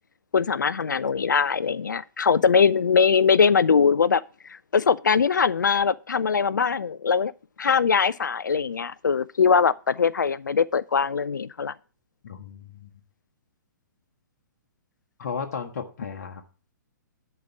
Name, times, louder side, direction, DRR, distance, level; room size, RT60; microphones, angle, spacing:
voice 1, 0.3-4.2 4.5-7.3 7.6-11.7, left 6 dB, 70° left, 0.4 m, -21 dB
voice 2, 12.2-12.9 15.2-16.4, left 6 dB, 50° left, 1.2 m, -34 dB
10.5 x 4.6 x 7.1 m
figure-of-eight pair, 120°, 10 cm